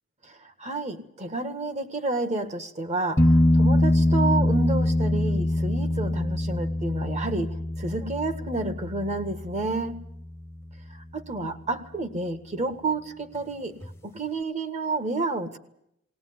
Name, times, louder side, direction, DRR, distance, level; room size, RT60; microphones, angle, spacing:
voice 1, 0.3-10.0 11.1-13.7 14.0-15.6, right 3 dB, 35° right, 9 dB, 1.8 m, -30 dB
sound 1, 3.2-10.8 13.8-13.9, left 1 dB, 15° left, 0.8 m, -24 dB
19.5 x 19.0 x 9.7 m, 0.76 s
head